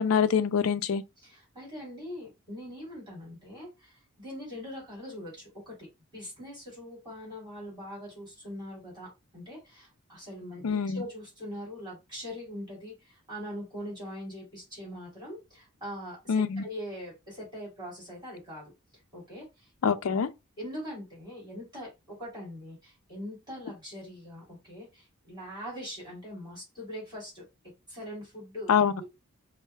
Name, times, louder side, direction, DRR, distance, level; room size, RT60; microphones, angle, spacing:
voice 1, 0.0-1.0 10.6-11.0 16.3-16.6 19.8-20.3 28.7-28.9, left 6 dB, 70° left, 0.4 m, -25 dB
voice 2, 1.2-5.9 6.1-18.7 19.1-19.7 20.6-27.4 27.9-29.0, equal, 20° right, 2.5 m, -42 dB
4.4 x 2.1 x 3.3 m
head